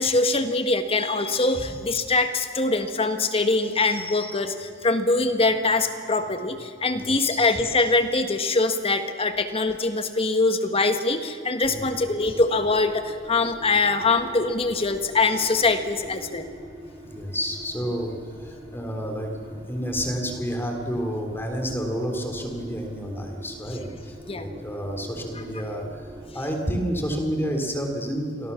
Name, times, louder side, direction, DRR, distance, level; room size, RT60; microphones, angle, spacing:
voice 1, 0.0-16.5 24.3-24.5, left 3 dB, 30° left, 8 dB, 1.7 m, -23 dB
voice 2, 7.0-7.4 11.7-12.1 17.0-26.0 26.3-28.5, equal, 10° left, 3 dB, 3.7 m, -30 dB
sound 1, 11.7-26.4, equal, 25° right, 5.1 m, -44 dB
29.0 x 23.5 x 7.2 m, 2.4 s
head